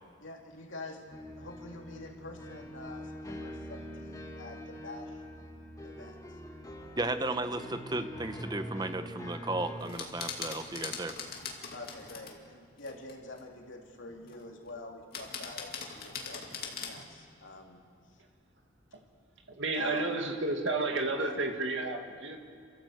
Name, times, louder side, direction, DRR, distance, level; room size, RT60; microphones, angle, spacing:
voice 1, 0.2-1.0 1.4-5.2 5.8-6.4 7.2-7.3 11.7-17.8 19.8-20.1 21.2-21.3, left 2 dB, 75° left, 1 dB, 2.9 m, -46 dB
sound 1, 1.1-9.9, equal, 15° left, 1.8 m, -44 dB
voice 2, 7.0-11.2, right 2 dB, 20° right, 9 dB, 0.8 m, -34 dB
sound 2, 9.8-12.3 12.8-13.4 14.3-14.7 15.1-17.1, left 6 dB, 50° left, 2.5 m, -41 dB
voice 3, 19.5-22.4, right 3 dB, 65° right, 3 dB, 2.2 m, -31 dB
28.0 x 14.0 x 8.0 m, 2.4 s
head